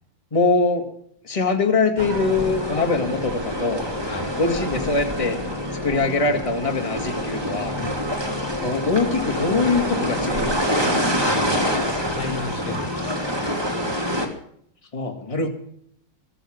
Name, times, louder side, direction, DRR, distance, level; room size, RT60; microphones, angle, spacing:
voice 1, 0.3-0.9 1.2-3.8 4.4-5.4 5.7-7.8 8.6-10.9 14.9-15.5, left 3 dB, 15° left, 3 dB, 2.0 m, -23 dB
sound 1, 2.0-14.3, equal, 10° right, 2.9 m, -26 dB
voice 2, 11.2-13.2, left 3 dB, 80° left, 5 dB, 2.5 m, -34 dB
23.0 x 7.7 x 7.8 m, 0.68 s
omnidirectional pair, 2.3 m